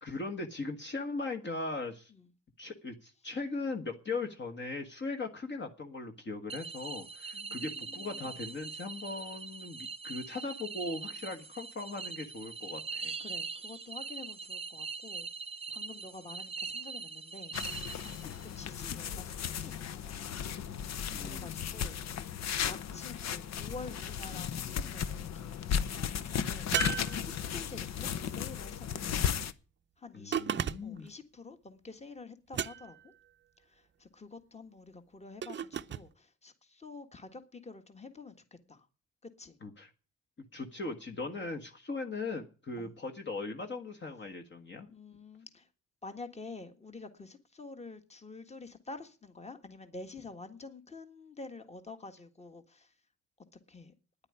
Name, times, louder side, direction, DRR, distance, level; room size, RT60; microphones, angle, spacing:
voice 1, 0.0-2.1 2.6-13.1 21.1-21.6 30.1-31.1 39.6-39.9 40.5-44.9, left 3 dB, 35° left, 1.5 m, -39 dB
sound 1, 6.5-18.5, right 5 dB, 20° right, 0.9 m, -42 dB
voice 2, 7.3-8.4 13.2-15.3 15.7-20.5 20.9-22.1 22.6-29.4 30.0-33.1 33.6-38.9 39.2-39.6 42.8-42.9 44.9-45.7 46.0-53.0 53.7-53.9, left 3 dB, 20° left, 1.7 m, -49 dB
sound 2, 17.5-29.5, left 8 dB, 60° left, 0.8 m, -35 dB
sound 3, 26.7-27.8 30.3-31.1 32.5-33.1 35.4-36.1, right 8 dB, 40° right, 0.6 m, -34 dB
10.0 x 8.8 x 9.6 m
cardioid pair, 90°, 30 cm